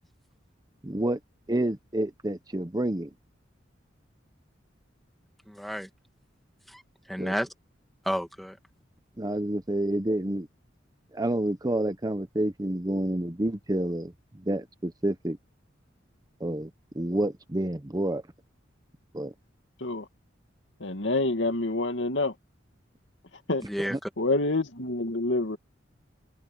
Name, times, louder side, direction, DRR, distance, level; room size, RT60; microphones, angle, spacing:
voice 1, 0.8-1.2 1.5-3.1 7.2-7.3 9.2-10.5 11.1-15.4 16.4-16.7 16.9-18.2 19.1-19.3 23.9-24.0, right 1 dB, 20° right, 0.9 m, -29 dB
voice 2, 5.5-5.9 6.7-6.8 7.1-7.5 8.0-8.6 23.6-24.1, equal, ahead, 2.1 m, -31 dB
voice 3, 20.8-22.3 23.5-23.6 24.2-25.6, left 2 dB, 75° left, 2.4 m, -27 dB
head